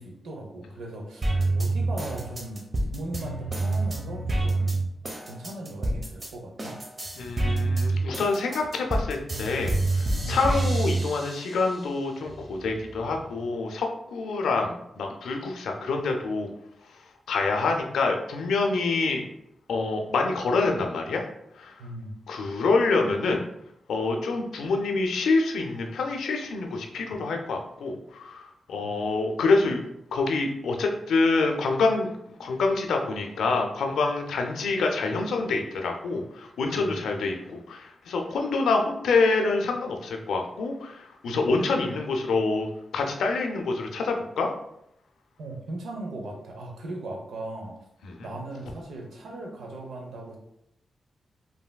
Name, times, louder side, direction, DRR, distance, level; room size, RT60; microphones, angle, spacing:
voice 1, 0.0-2.6 2.9-4.7 5.3-6.8 10.2-10.5 21.8-22.1 36.8-37.0 41.2-41.5 45.4-47.8 48.2-50.4, right 1 dB, 85° right, 0 dB, 0.6 m, -38 dB
sound 1, 1.2-6.3 6.6-11.8 12.3-13.2, right 2 dB, 40° right, 0.7 m, -27 dB
voice 2, 7.2-16.5 17.3-19.2 19.7-21.2 21.6-21.7 22.3-23.4 23.9-29.8 30.1-32.1 32.4-42.7 42.9-44.5 48.0-48.3, left 3 dB, 85° left, 3 dB, 0.4 m, -26 dB
3.2 x 2.6 x 2.2 m, 0.78 s
supercardioid pair, 45°, 0 cm